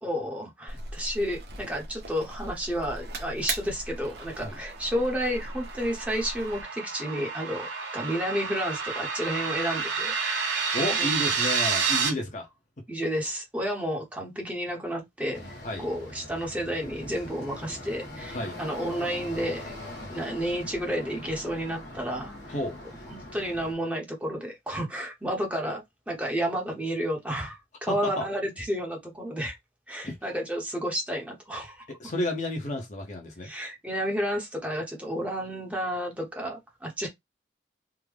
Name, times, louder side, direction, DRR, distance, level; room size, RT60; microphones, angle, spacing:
voice 1, 0.0-7.7 7.9-10.1 10.5-11.1 12.9-22.5 23.1-29.6 29.9-31.9 33.4-37.1, equal, 10° right, 0.9 m, -31 dB
sound 1, 0.7-6.6, right 2 dB, 65° right, 1.0 m, -39 dB
sound 2, 4.4-12.1, right 5 dB, 85° right, 1.2 m, -30 dB
voice 2, 10.7-12.5 15.6-15.9 18.3-18.6 22.5-22.8 27.9-28.2 30.0-30.2 31.9-33.5, left 1 dB, 45° left, 0.8 m, -31 dB
sound 3, 15.3-23.8, left 1 dB, 80° left, 1.3 m, -42 dB
3.6 x 2.1 x 3.3 m
head